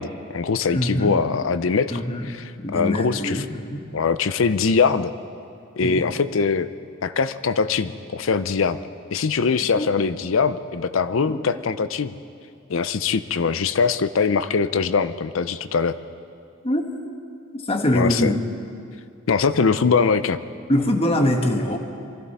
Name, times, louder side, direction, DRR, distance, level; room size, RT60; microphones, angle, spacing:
voice 1, 0.0-2.4 2.7-3.4 3.9-5.1 5.8-6.7 7.0-8.8 9.1-12.1 12.7-16.0 17.9-18.3 19.3-20.4, left 5 dB, 70° left, 13 dB, 0.6 m, -22 dB
voice 2, 0.7-1.2 1.9-2.3 2.6-3.8 5.8-6.1 9.8-9.9 11.3-11.4 16.6-16.8 17.5-18.4 20.7-21.8, left 1 dB, 30° left, 3 dB, 1.3 m, -23 dB
23.5 x 14.5 x 4.2 m, 2.4 s
head